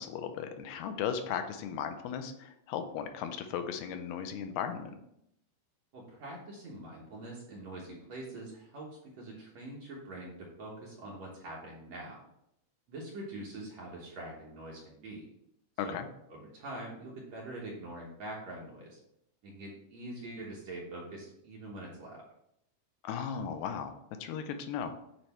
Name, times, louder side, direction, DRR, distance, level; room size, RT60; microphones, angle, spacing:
voice 1, 0.0-5.0 15.8-16.1 23.0-23.9 24.2-25.0, left 7 dB, 80° left, 7 dB, 2.4 m, -36 dB
voice 2, 5.9-12.2 12.9-15.3 15.8-16.0 16.3-19.0 19.4-22.2, right 1 dB, 65° right, -4 dB, 1.8 m, -44 dB
9.0 x 3.3 x 4.2 m, 0.77 s
omnidirectional pair, 4.6 m